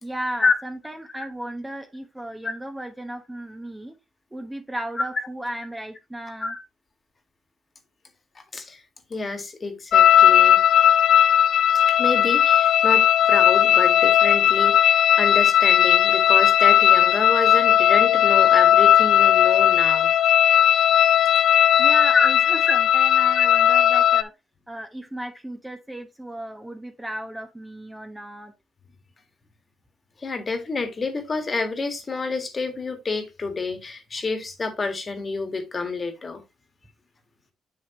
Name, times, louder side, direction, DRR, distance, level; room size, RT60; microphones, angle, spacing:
voice 1, 0.0-4.0 4.3-6.5 21.8-24.3 24.7-28.5, right 1 dB, 10° right, 1.1 m, -35 dB
voice 2, 8.4-8.8 9.1-10.6 11.9-20.1 22.1-22.3 23.4-23.5 30.2-36.4, left 4 dB, 35° left, 1.8 m, -28 dB
sound 1, 9.9-24.2, left 10 dB, 65° left, 0.5 m, -17 dB
7.1 x 6.5 x 3.0 m
cardioid pair, 90°, 0 cm